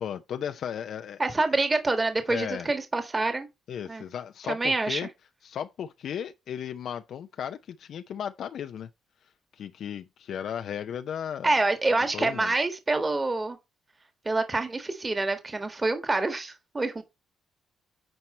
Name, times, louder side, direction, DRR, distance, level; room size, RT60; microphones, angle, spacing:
voice 1, 0.0-1.2 2.3-2.7 3.7-5.1 5.4-8.9 9.2-11.5 12.1-12.5, left 8 dB, 65° left, 0.5 m, -35 dB
voice 2, 1.2-3.5 3.9-4.0 4.5-5.0 11.4-13.6 14.2-17.0, right 3 dB, 25° right, 1.5 m, -26 dB
9.0 x 4.6 x 4.2 m
cardioid pair, 90°, 0 cm